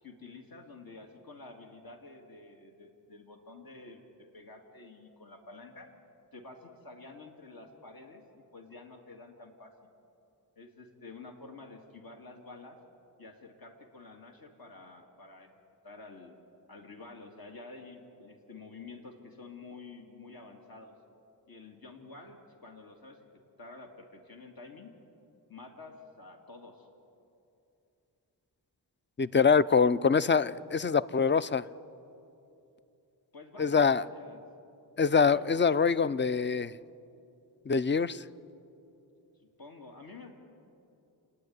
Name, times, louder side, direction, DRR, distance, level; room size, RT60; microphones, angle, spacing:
voice 1, 0.0-5.9 6.3-9.7 10.6-12.8 13.2-15.5 15.8-16.3 16.7-20.9 21.5-24.9 25.5-26.9 33.3-34.4 35.2-35.5 39.4-40.3, left 3 dB, 55° left, 3 dB, 2.2 m, -49 dB
voice 2, 29.2-31.6 33.6-34.0 35.0-36.7 37.7-38.2, left 5 dB, 25° left, 16 dB, 0.5 m, -24 dB
29.0 x 9.9 x 9.5 m, 2.8 s
cardioid pair, 45°, 41 cm